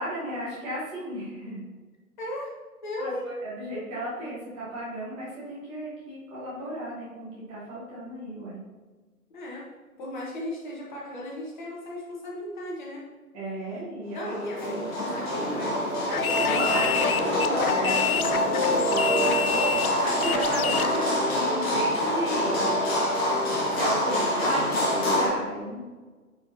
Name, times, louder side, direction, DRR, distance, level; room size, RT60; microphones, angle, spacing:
voice 1, 0.0-1.6 3.0-3.1 3.4-8.6 13.3-14.3 14.6-15.6 16.4-22.6 23.7-25.8, equal, 10° right, -8 dB, 1.3 m, -34 dB
voice 2, 2.2-2.5 2.8-3.3 9.3-9.6 10.0-13.0 13.7-13.8 14.1-15.8 16.1-17.1, left 1 dB, 30° left, -3 dB, 1.5 m, -36 dB
sound 1, 14.2-25.3, equal, 15° left, 1.0 m, -25 dB
sound 2, 16.1-21.0, left 7 dB, 70° left, 0.6 m, -28 dB
9.2 x 4.8 x 2.8 m, 1.3 s
figure-of-eight pair, 135°, 45 cm